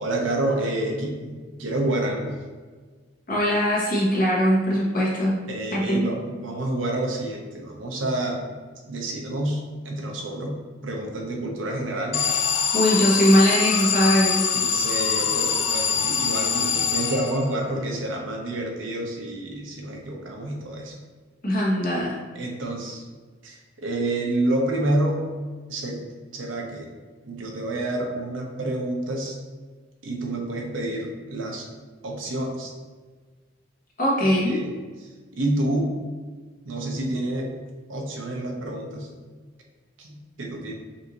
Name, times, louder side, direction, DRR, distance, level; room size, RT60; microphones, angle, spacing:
voice 1, 0.0-2.3 5.5-8.4 8.9-10.6 10.8-12.2 14.5-20.9 22.3-23.0 23.4-25.2 25.7-26.0 26.3-26.9 27.2-29.4 30.0-31.7 32.0-32.7 34.2-34.7 35.0-35.9 36.6-37.5 37.9-39.1 40.0-40.7, right 1 dB, 90° right, 0 dB, 0.8 m, -28 dB
voice 2, 3.3-5.3 5.7-6.0 12.7-14.5 21.4-22.1 34.0-34.6, equal, 45° left, -5 dB, 1.3 m, -21 dB
Alarm, 12.1-17.7, left 6 dB, 65° left, 0.5 m, -24 dB
5.5 x 2.6 x 2.9 m, 1.4 s
head